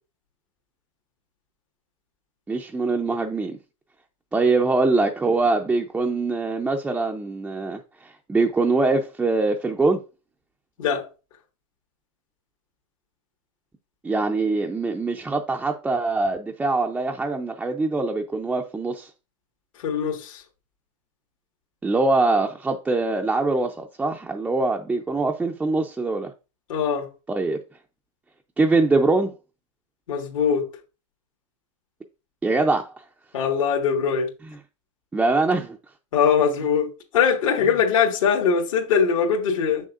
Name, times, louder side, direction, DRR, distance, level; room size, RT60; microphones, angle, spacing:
voice 1, 2.5-3.6 4.3-10.0 14.0-19.1 21.8-26.3 27.3-27.6 28.6-29.3 32.4-32.9 35.1-35.8, right 3 dB, 5° right, 0.4 m, -23 dB
voice 2, 19.8-20.4 26.7-27.1 30.1-30.6 33.3-34.3 36.1-39.9, left 6 dB, 80° left, 1.7 m, -21 dB
6.9 x 6.4 x 2.5 m
hypercardioid pair, 140°, 17 cm